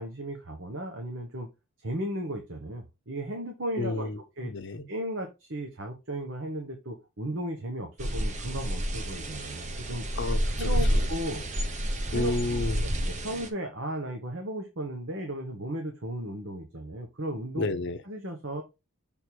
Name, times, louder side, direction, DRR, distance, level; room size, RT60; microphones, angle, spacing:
voice 1, 0.0-1.5 1.8-4.1 4.4-4.5 4.9-10.0 10.6-11.5 12.1-12.3 13.0-17.6 18.1-18.6, right 1 dB, 60° right, 1.2 m, -35 dB
voice 2, 3.8-4.9 10.2-11.0 12.1-12.8 17.5-18.0, left 2 dB, 55° left, 0.7 m, -31 dB
sound 1, 8.0-13.5, equal, 35° right, 1.0 m, -29 dB
6.5 x 3.6 x 4.5 m
head